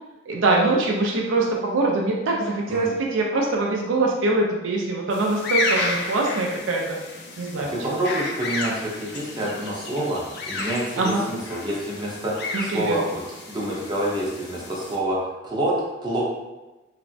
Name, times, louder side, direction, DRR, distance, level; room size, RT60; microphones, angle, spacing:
voice 1, 0.3-7.0 7.4-8.0 10.0-10.1 11.0-11.2 12.7-13.0, right 2 dB, 75° right, 0 dB, 0.4 m, -23 dB
sound 1, 5.1-15.0, left 3 dB, 60° left, 0.4 m, -32 dB
voice 2, 7.7-13.2 13.5-15.7 16.0-16.2, right 1 dB, 25° right, -5 dB, 0.7 m, -27 dB
3.2 x 2.0 x 2.6 m, 1.1 s
head